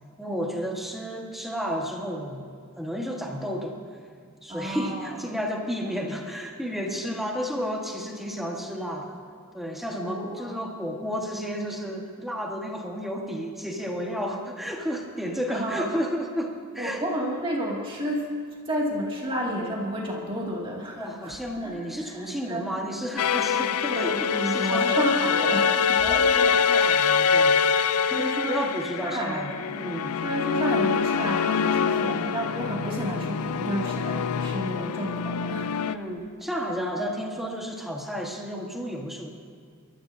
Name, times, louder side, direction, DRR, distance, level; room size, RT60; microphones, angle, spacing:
voice 1, 0.2-2.5 2.8-3.8 4.4-9.2 9.5-17.0 21.0-25.0 25.9-30.2 31.8-32.2 35.8-39.3, equal, ahead, 0 dB, 1.4 m, -32 dB
voice 2, 4.5-5.2 9.9-10.5 15.5-15.9 16.8-18.3 18.7-21.3 21.6-22.6 23.9-26.5 28.2-28.6 29.0-29.5 30.2-35.7, equal, 25° right, -4 dB, 2.3 m, -31 dB
sound 1, 23.2-36.0, left 6 dB, 85° left, 0.5 m, -24 dB
27.5 x 13.5 x 2.7 m, 2.1 s
head